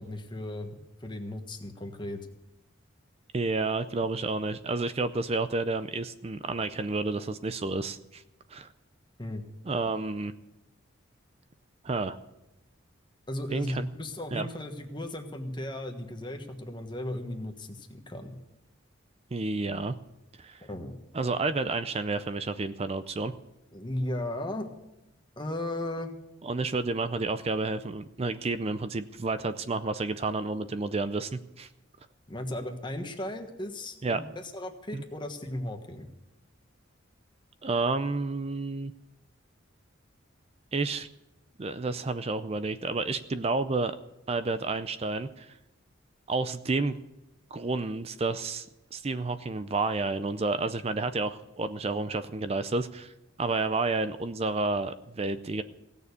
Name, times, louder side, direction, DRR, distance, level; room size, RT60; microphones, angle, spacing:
voice 1, 0.0-2.3 9.2-9.4 13.3-18.4 20.6-21.0 23.7-24.7 25.4-26.1 32.3-36.1, left 1 dB, 25° left, 5 dB, 1.4 m, -36 dB
voice 2, 3.3-8.2 8.5-8.7 9.6-10.3 11.8-12.2 13.5-13.9 14.3-14.5 19.3-20.0 20.4-20.6 21.1-23.3 26.4-31.7 34.0-34.2 34.9-35.0 37.6-38.9 40.7-41.1 41.6-44.0 44.3-45.5 46.3-47.0 47.5-53.1 53.4-55.6, right 3 dB, 30° right, 12 dB, 0.5 m, -30 dB
17.0 x 6.9 x 8.2 m, 0.92 s
head